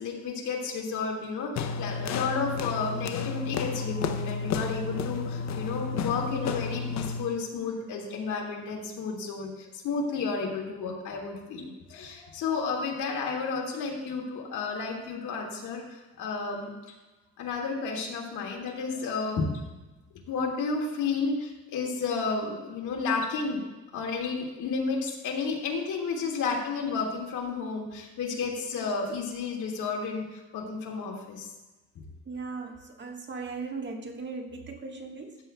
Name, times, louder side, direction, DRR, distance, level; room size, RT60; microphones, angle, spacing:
voice 1, 0.0-16.7 17.4-19.5 20.3-23.6 23.9-30.2 30.5-31.5, left 4 dB, 80° left, -1 dB, 2.1 m, -32 dB
sound 1, 1.6-7.4, left 5 dB, 65° left, 0.7 m, -32 dB
voice 2, 32.2-35.4, right 4 dB, 35° right, 2 dB, 1.5 m, -38 dB
13.5 x 8.9 x 2.3 m, 1.1 s
cardioid pair, 90°, 30 cm